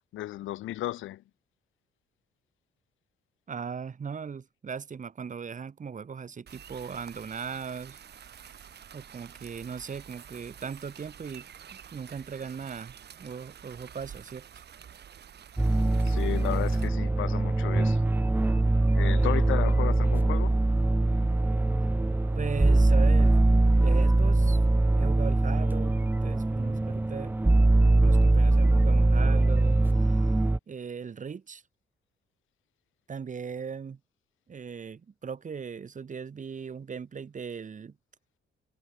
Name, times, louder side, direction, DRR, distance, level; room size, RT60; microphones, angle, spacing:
voice 1, 0.1-1.2 16.0-18.0 18.9-20.6, left 15 dB, 80° left, 1.1 m, -34 dB
voice 2, 3.5-8.0 8.9-11.5 11.7-14.5 22.3-23.4 23.7-24.6 24.9-27.4 28.0-30.2 30.7-31.6 33.1-34.0 34.5-38.0, right 6 dB, 40° right, 2.4 m, -38 dB
sound 1, 6.5-16.9, right 8 dB, 60° right, 5.2 m, -49 dB
sound 2, 15.6-30.6, right 2 dB, 10° right, 0.6 m, -22 dB
cardioid pair, 90°, 20 cm